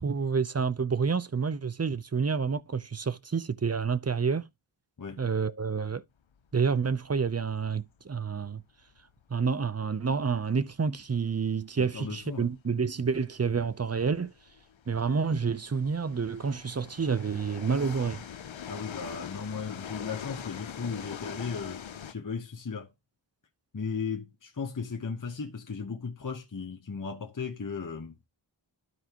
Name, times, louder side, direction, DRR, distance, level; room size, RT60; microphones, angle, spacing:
voice 1, 0.0-4.5 5.2-6.0 6.5-8.6 9.3-14.3 14.9-18.2, right 5 dB, 30° right, 0.7 m, -29 dB
sound 1, 6.8-10.4 10.7-10.8 11.2-11.4 12.2-12.4 12.7-12.8 13.4-22.1, left 8 dB, 65° left, 0.8 m, -43 dB
voice 2, 11.8-12.5 18.7-22.9 23.7-28.1, left 5 dB, 40° left, 1.1 m, -36 dB
12.5 x 4.7 x 3.0 m
cardioid pair, 40°, 49 cm